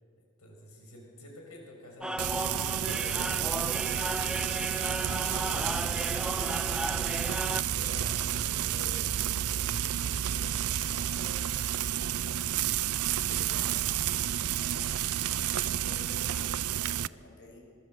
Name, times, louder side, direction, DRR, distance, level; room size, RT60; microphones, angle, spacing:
voice 1, 0.4-6.7 7.2-12.2, left 1 dB, 85° left, 1 dB, 6.4 m, -49 dB
sound 1, 2.0-7.6, right 1 dB, 5° right, 0.6 m, -35 dB
Frying (food), 2.2-17.1, right 11 dB, 85° right, 0.6 m, -30 dB
voice 2, 13.3-13.9 14.3-14.9 15.6-17.6, left 2 dB, 55° left, 0 dB, 6.5 m, -51 dB
26.0 x 24.0 x 8.0 m, 2.1 s
head